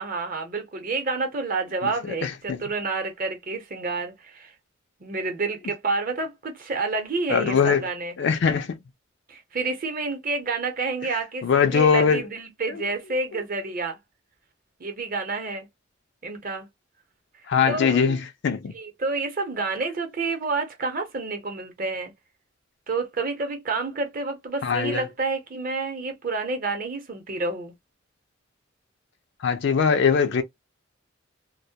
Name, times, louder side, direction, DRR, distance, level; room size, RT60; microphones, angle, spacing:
voice 1, 0.0-4.5 5.0-8.1 9.3-14.0 14.8-15.7 16.2-16.7 17.7-18.2 18.7-22.1 22.9-27.7, right 3 dB, 45° right, 0.8 m, -29 dB
voice 2, 2.2-2.6 7.3-7.8 8.2-8.8 11.4-12.2 12.7-12.8 17.5-18.2 18.4-18.7 24.6-25.0 29.4-30.4, left 6 dB, 60° left, 0.4 m, -21 dB
2.1 x 2.1 x 2.7 m
head